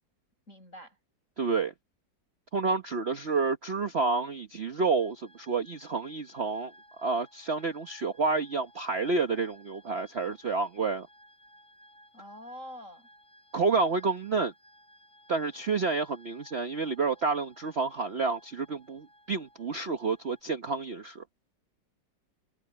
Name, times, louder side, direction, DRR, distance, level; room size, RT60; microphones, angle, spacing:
voice 1, 0.5-1.0 12.1-13.1, equal, 40° left, 7.6 m, -45 dB
voice 2, 1.4-1.7 2.5-6.7 7.0-11.1 13.5-14.5 15.3-21.2, right 4 dB, 40° right, 1.1 m, -29 dB
sound 1, 4.8-20.4, equal, 15° left, 6.0 m, -59 dB
omnidirectional pair, 2.0 m